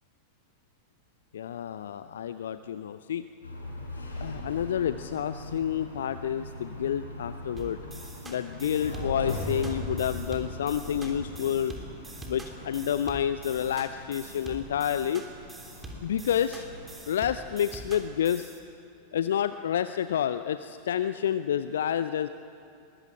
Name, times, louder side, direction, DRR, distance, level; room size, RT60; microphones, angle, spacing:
voice 1, 1.3-3.3 4.1-7.8 8.2-11.8 12.3-15.2 16.0-16.7 17.1-18.5 19.1-22.3, left 9 dB, 60° left, 12 dB, 0.5 m, -29 dB
sound 1, 3.4-17.0, left 1 dB, 80° left, 4.3 m, -40 dB
sound 2, 7.6-18.6, right 2 dB, 15° right, 3.3 m, -45 dB
22.0 x 19.5 x 8.8 m, 2.8 s
figure-of-eight pair, 90°, 0 cm